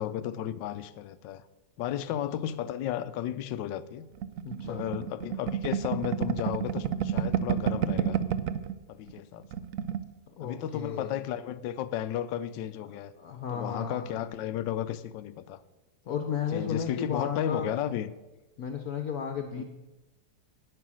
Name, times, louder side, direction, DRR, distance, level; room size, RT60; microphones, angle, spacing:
voice 1, 0.0-1.4 1.8-4.1 4.6-8.2 8.9-9.5 10.4-13.1 13.5-15.6 16.5-18.1 19.5-19.6, left 11 dB, 80° left, 14 dB, 1.3 m, -33 dB
sound 1, 4.2-8.7 9.1-9.2 9.4-10.0, right 9 dB, 70° right, 0.8 m, -29 dB
voice 2, 4.4-4.9 10.4-11.1 13.2-14.3 16.1-17.7 18.6-19.6, left 7 dB, 60° left, 6 dB, 1.3 m, -34 dB
11.0 x 8.8 x 6.2 m, 1.1 s
omnidirectional pair, 2.0 m